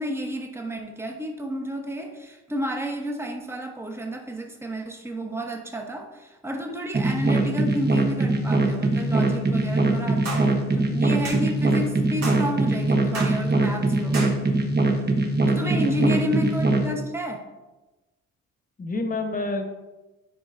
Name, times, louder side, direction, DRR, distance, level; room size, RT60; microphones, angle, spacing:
voice 1, 0.0-14.4 15.5-17.5, equal, 10° right, 3 dB, 0.9 m, -31 dB
sound 1, 6.9-16.9, right 2 dB, 35° right, 1.0 m, -22 dB
sound 2, 10.3-10.5 11.2-11.4 12.2-12.4 13.1-13.4 14.1-14.4, right 3 dB, 60° right, 2.0 m, -32 dB
voice 2, 15.4-16.0 18.8-19.6, left 2 dB, 30° left, 4 dB, 1.1 m, -29 dB
10.0 x 4.6 x 2.6 m, 1.1 s
cardioid pair, 90°, 30 cm